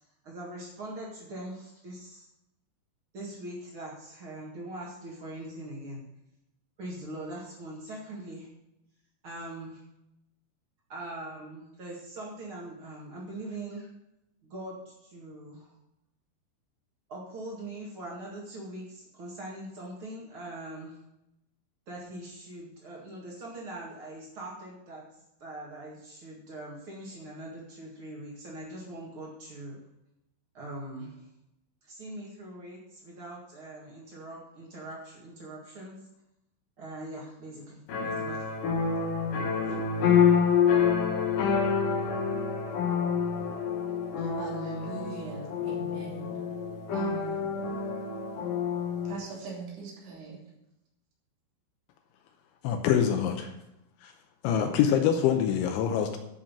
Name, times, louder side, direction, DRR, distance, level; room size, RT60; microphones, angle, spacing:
voice 1, 0.2-2.3 3.1-6.0 6.8-8.5 9.2-9.8 10.9-13.9 14.4-15.7 17.1-21.0 21.9-25.0 25.4-29.8 30.5-31.3 31.8-36.0 36.8-38.5 39.4-39.8, right 1 dB, 80° right, -4 dB, 1.1 m, -42 dB
sound 1, 37.9-49.1, left 6 dB, 55° left, 2.6 m, -27 dB
voice 2, 44.2-46.3 46.9-47.5 49.0-50.4 54.6-54.8, right 4 dB, 65° right, -3 dB, 5.1 m, -40 dB
voice 3, 52.6-53.5 54.0-54.1 54.4-56.2, left 9 dB, 80° left, 5 dB, 2.9 m, -25 dB
12.5 x 5.6 x 7.3 m, 0.88 s
omnidirectional pair, 5.8 m